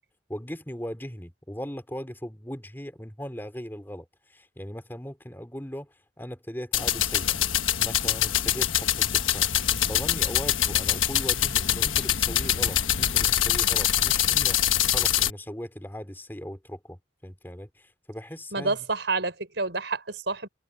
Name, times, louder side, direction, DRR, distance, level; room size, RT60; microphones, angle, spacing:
voice 1, 0.3-7.3 7.8-9.5 9.8-18.8, equal, 10° left, 3.3 m, -39 dB
sound 1, 6.7-15.3, left 11 dB, 90° left, 1.3 m, -24 dB
voice 2, 18.5-20.5, right 3 dB, 65° right, 5.0 m, -28 dB
head